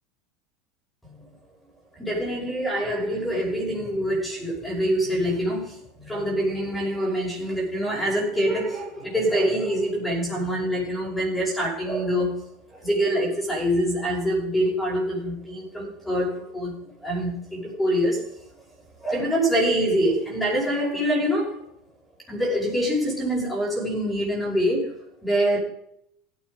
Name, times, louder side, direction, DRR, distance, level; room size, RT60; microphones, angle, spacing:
voice 1, 2.0-12.4 12.7-18.3 19.0-21.6 22.3-25.0 25.2-25.6, equal, 10° left, 5.6 m, -25 dB
16.0 x 9.6 x 5.1 m
supercardioid pair, 145°, 0 cm